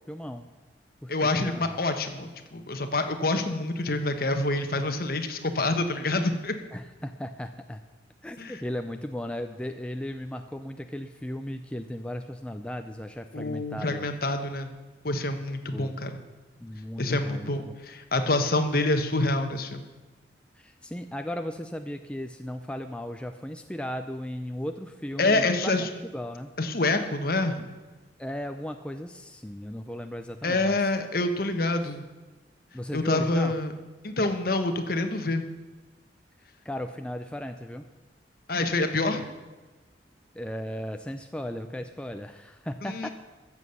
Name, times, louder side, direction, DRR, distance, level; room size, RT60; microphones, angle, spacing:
voice 1, 0.1-0.5 1.0-1.1 1.4-1.8 6.7-7.8 8.2-14.1 15.7-15.9 16.6-17.8 20.6-26.5 28.2-30.9 32.7-33.5 36.6-37.9 40.3-43.1, left 1 dB, 5° left, 6 dB, 0.4 m, -36 dB
voice 2, 1.1-6.5 8.4-8.6 13.3-14.7 15.0-16.1 17.0-19.8 25.2-25.9 26.6-27.7 30.4-32.0 32.9-33.7 34.0-35.4 38.5-39.2 42.8-43.1, left 2 dB, 55° left, 7 dB, 1.2 m, -27 dB
14.5 x 7.3 x 6.9 m, 1.2 s
head